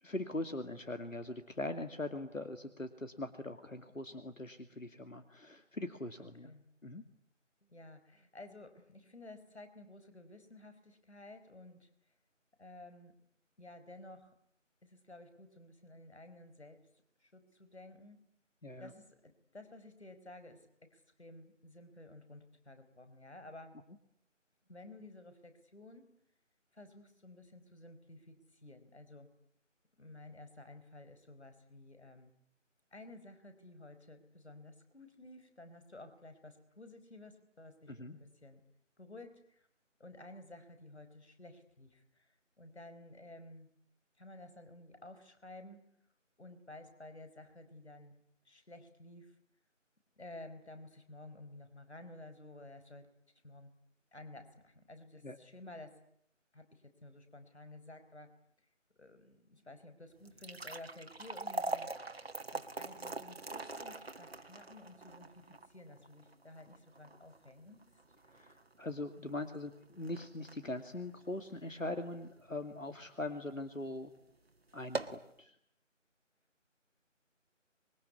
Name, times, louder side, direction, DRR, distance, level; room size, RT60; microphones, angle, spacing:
voice 1, 0.0-6.5 6.8-7.0 18.6-18.9 37.9-38.1 55.2-55.4 68.3-74.1 74.7-75.6, left 2 dB, 90° left, 8 dB, 2.5 m, -41 dB
voice 2, 6.2-6.6 7.6-11.9 12.6-13.1 13.6-14.4 14.8-16.9 17.2-18.2 18.8-23.8 24.7-26.1 26.7-29.3 30.0-32.3 32.9-38.6 39.0-39.7 40.0-43.7 44.2-45.8 46.4-48.2 48.4-49.4 50.2-53.1 53.4-53.7 54.1-56.0 56.5-58.3 59.0-61.9 62.5-68.0, left 2 dB, 60° left, 9 dB, 5.0 m, -53 dB
sound 1, 60.2-72.5 72.9-73.0 73.7-73.9 74.2-74.3 74.7-75.3, right 2 dB, 50° right, 1.7 m, -43 dB
26.0 x 22.5 x 9.7 m, 0.70 s
figure-of-eight pair, 165°, 38 cm